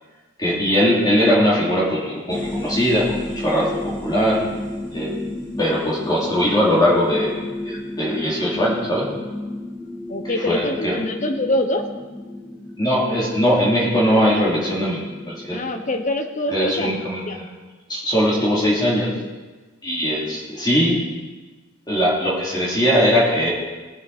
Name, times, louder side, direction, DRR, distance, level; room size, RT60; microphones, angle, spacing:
voice 1, 0.4-4.4 4.9-5.2 5.6-7.3 7.6-9.1 10.5-10.9 12.8-15.0 15.3-15.6 16.5-17.4 17.9-19.1 19.8-21.0 21.9-23.5, equal, 20° left, -7 dB, 3.0 m, -20 dB
sound 1, 2.3-16.0, left 1 dB, 5° left, 1.5 m, -33 dB
voice 2, 10.1-11.9 15.5-17.4, left 1 dB, 35° left, 6 dB, 0.9 m, -25 dB
19.0 x 8.0 x 4.2 m, 1.3 s
head